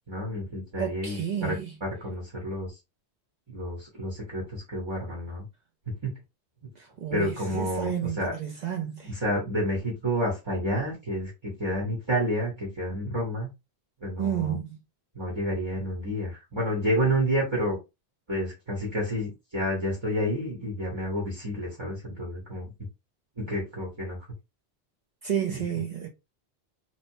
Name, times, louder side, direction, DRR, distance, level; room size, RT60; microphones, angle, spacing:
voice 1, 0.1-2.7 3.5-5.4 6.0-6.2 7.1-8.3 9.0-13.5 14.0-14.6 15.1-17.8 18.3-22.6 23.4-24.2 25.5-25.6, equal, 30° right, 0.9 m, -30 dB
voice 2, 0.8-1.7 7.0-9.1 14.2-14.7 25.2-26.1, right 9 dB, 55° right, 0.5 m, -31 dB
2.8 x 2.1 x 2.6 m
omnidirectional pair, 1.1 m